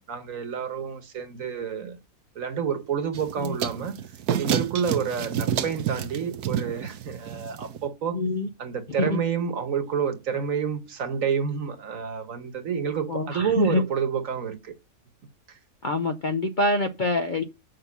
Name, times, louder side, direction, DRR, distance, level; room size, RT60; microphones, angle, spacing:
voice 1, 0.0-2.0 2.3-8.2 8.6-14.7 15.5-15.6, right 7 dB, 65° right, 1.5 m, -29 dB
sound 1, 3.1-7.9, right 9 dB, 85° right, 1.2 m, -29 dB
voice 2, 8.1-8.5 9.0-9.2 13.1-13.8 15.8-17.4, left 2 dB, 50° left, 0.6 m, -25 dB
6.7 x 5.6 x 7.0 m
omnidirectional pair, 1.6 m